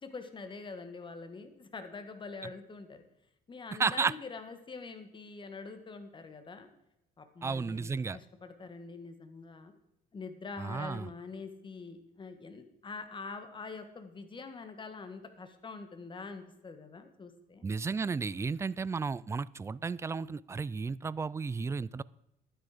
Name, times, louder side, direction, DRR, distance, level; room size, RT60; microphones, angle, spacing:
voice 1, 0.0-3.0 3.5-6.7 7.2-9.7 10.1-17.7, left 4 dB, 30° left, 8 dB, 1.7 m, -45 dB
voice 2, 3.8-4.1 7.4-8.2 10.6-11.1 17.6-22.0, right 5 dB, 15° right, 20 dB, 0.3 m, -33 dB
12.0 x 9.9 x 5.0 m, 0.83 s
cardioid pair, 110°, 17 cm